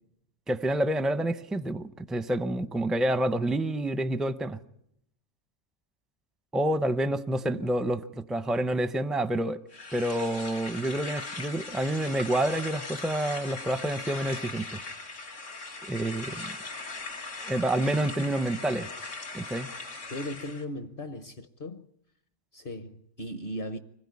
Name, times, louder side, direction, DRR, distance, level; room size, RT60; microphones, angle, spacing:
voice 1, 0.5-4.6 6.5-9.6 9.9-14.8 15.8-16.5 17.4-18.9 19.3-19.7, right 1 dB, ahead, 0.5 m, -28 dB
sound 1, 9.7-20.6, left 3 dB, 85° left, 2.5 m, -39 dB
voice 2, 20.1-21.9 22.5-23.8, left 1 dB, 50° left, 1.2 m, -37 dB
25.0 x 16.0 x 9.6 m
omnidirectional pair, 1.3 m